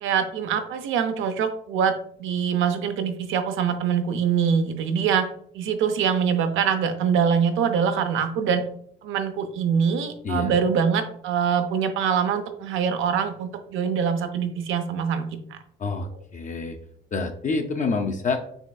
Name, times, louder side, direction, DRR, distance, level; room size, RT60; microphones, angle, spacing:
voice 1, 0.0-1.9 2.2-5.3 5.5-8.6 9.0-15.6, right 7 dB, 85° right, 8 dB, 0.6 m, -24 dB
voice 2, 10.2-10.6 15.8-16.1 16.3-16.8 17.1-18.4, left 4 dB, 40° left, 4 dB, 0.5 m, -27 dB
5.4 x 3.3 x 2.3 m, 0.65 s
cardioid pair, 90°, 20 cm